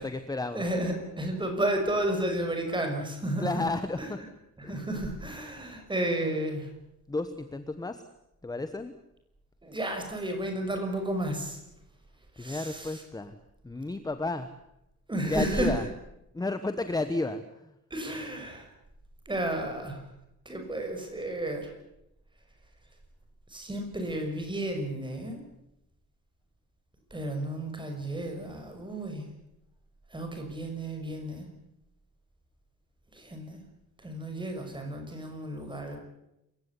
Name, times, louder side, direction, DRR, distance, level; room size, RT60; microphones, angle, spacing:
voice 1, 0.0-0.7 1.1-1.2 3.4-4.2 4.6-4.8 7.1-8.0 8.4-8.9 12.4-13.3 13.6-14.5 15.2-15.9 16.3-17.7, left 2 dB, 10° left, 10 dB, 1.1 m, -32 dB
voice 2, 0.5-3.6 4.0-4.1 4.6-6.7 9.6-11.6 12.4-13.0 15.1-15.8 17.9-18.7 19.3-20.0 20.5-21.7 23.5-25.4 27.1-29.2 30.1-31.5 33.1-33.6 34.0-36.0, right 1 dB, 15° right, 4 dB, 6.0 m, -32 dB
27.5 x 16.5 x 9.9 m, 0.85 s
wide cardioid pair, 170°, 32 cm